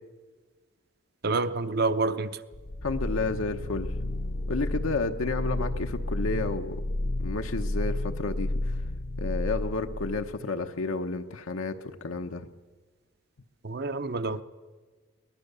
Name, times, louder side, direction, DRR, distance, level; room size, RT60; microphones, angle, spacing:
voice 1, 1.2-2.4 13.6-14.4, right 3 dB, 50° right, 0.7 m, -28 dB
sound 1, 2.5-10.4, left 1 dB, 50° left, 0.7 m, -32 dB
voice 2, 2.8-3.9 4.5-6.8 7.2-8.7 9.2-12.5, left 3 dB, 90° left, 1.0 m, -31 dB
22.5 x 18.5 x 6.8 m
head